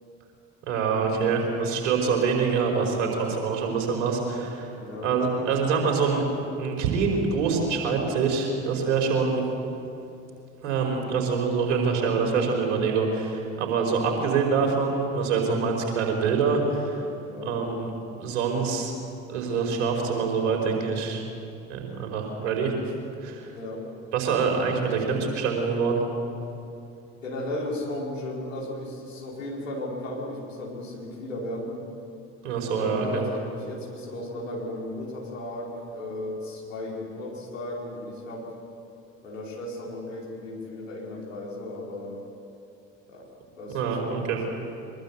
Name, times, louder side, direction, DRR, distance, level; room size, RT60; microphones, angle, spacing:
voice 1, 0.6-4.7 5.0-6.2 6.6-9.4 10.6-17.0 17.4-17.9 18.2-18.9 19.3-21.2 21.7-22.7 23.2-23.5 24.1-26.0 32.4-33.2 43.7-44.4, right 5 dB, 65° right, 2 dB, 5.0 m, -25 dB
voice 2, 4.8-5.1 17.2-17.5 23.5-23.8 27.2-31.8 32.7-38.5 39.2-42.2 43.1-43.3 43.6-44.2, left 1 dB, 75° left, -3 dB, 5.0 m, -35 dB
23.5 x 22.5 x 8.3 m, 2.7 s
figure-of-eight pair, 60°, 39 cm